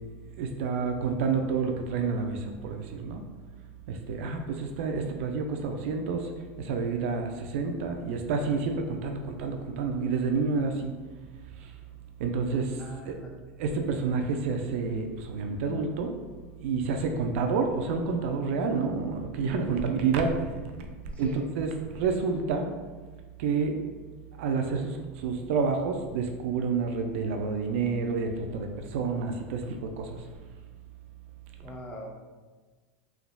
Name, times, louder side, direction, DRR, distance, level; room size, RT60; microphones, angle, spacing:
voice 1, 0.4-3.2 3.9-6.3 6.6-10.9 11.6-11.7 12.2-13.2 13.6-16.1 16.6-20.9 21.2-22.7 23.4-23.8 24.4-30.2, right 4 dB, 70° right, 4 dB, 0.4 m, -29 dB
voice 2, 12.8-13.3 21.2-21.4 31.6-32.1, equal, 20° left, 0 dB, 0.6 m, -40 dB
3.4 x 2.3 x 2.2 m, 1.3 s
supercardioid pair, 110°, 7 cm